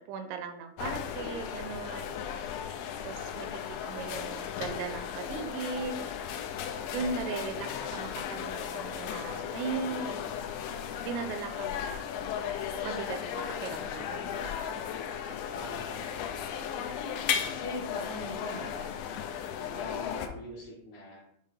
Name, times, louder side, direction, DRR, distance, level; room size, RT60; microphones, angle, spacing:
voice 1, 0.1-2.2 3.0-6.1 6.9-10.2 11.0-11.9 12.8-14.5, right 5 dB, 85° right, 7 dB, 3.2 m, -38 dB
sound 1, 0.8-20.3, left 8 dB, 80° left, 2.8 m, -36 dB
voice 2, 15.5-16.9 17.5-18.9 19.7-21.2, left 1 dB, 60° left, -9 dB, 2.4 m, -43 dB
8.5 x 3.6 x 3.6 m, 0.68 s
omnidirectional pair, 5.6 m